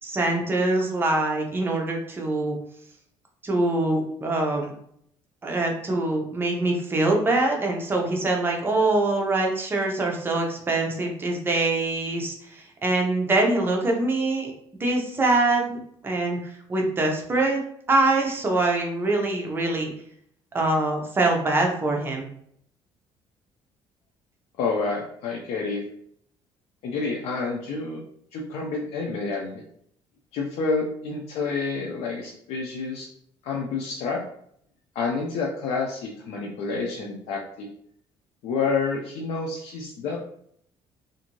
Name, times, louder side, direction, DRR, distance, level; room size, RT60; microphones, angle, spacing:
voice 1, 0.0-2.5 3.4-4.7 5.4-14.5 14.8-15.8 16.0-17.6 17.9-19.9 20.5-22.3, right 2 dB, 20° right, 1 dB, 0.6 m, -24 dB
voice 2, 24.6-25.8 26.8-28.0 28.3-29.6 30.3-33.1 33.4-34.2 34.9-37.7 38.4-40.2, left 4 dB, 80° left, -1 dB, 0.5 m, -28 dB
2.5 x 2.5 x 2.9 m, 0.68 s
cardioid pair, 140°, 10 cm